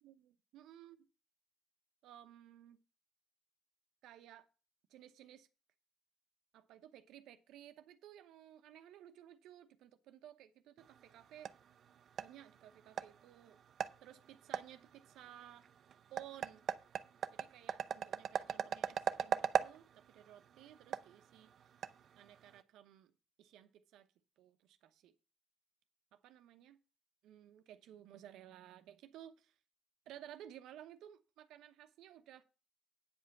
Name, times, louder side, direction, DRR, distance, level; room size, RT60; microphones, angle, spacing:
voice 1, 0.0-1.0 2.0-2.8 4.0-4.5 4.9-5.5 6.5-11.5 12.2-13.6 14.0-15.7 16.1-16.6 17.3-21.5 22.2-23.1 23.4-24.1 24.4-25.1 26.1-26.8 27.2-29.5 30.1-32.4, right 11 dB, 90° right, 0.8 m, -56 dB
sound 1, 10.8-22.6, right 8 dB, 60° right, 0.5 m, -41 dB
9.2 x 5.2 x 7.1 m
cardioid pair, 90°, 0 cm